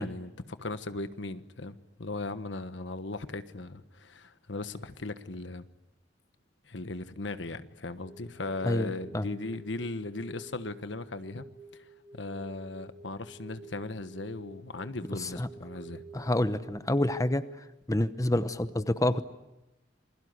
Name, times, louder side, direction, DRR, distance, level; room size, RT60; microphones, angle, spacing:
voice 1, 0.0-5.7 6.7-11.4 11.8-16.0, left 2 dB, 90° left, 1.3 m, -38 dB
sound 1, 8.0-16.8, right 2 dB, 15° right, 3.2 m, -51 dB
voice 2, 16.1-17.4 17.9-19.2, left 1 dB, 20° left, 0.9 m, -27 dB
28.0 x 22.0 x 9.6 m
head